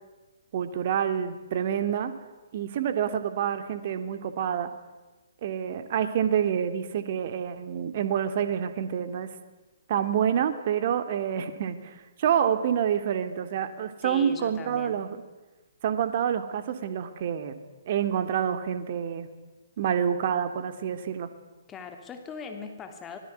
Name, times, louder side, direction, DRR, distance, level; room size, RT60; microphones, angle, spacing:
voice 1, 0.5-2.1 2.5-4.7 5.4-9.3 9.9-15.2 15.8-17.6 17.9-19.3 19.8-21.3, right 8 dB, 45° right, 10 dB, 2.8 m, -27 dB
voice 2, 14.0-15.0 21.7-23.2, left 5 dB, 15° left, 6 dB, 2.8 m, -40 dB
25.0 x 20.5 x 9.5 m, 1.2 s
figure-of-eight pair, 125°, 0 cm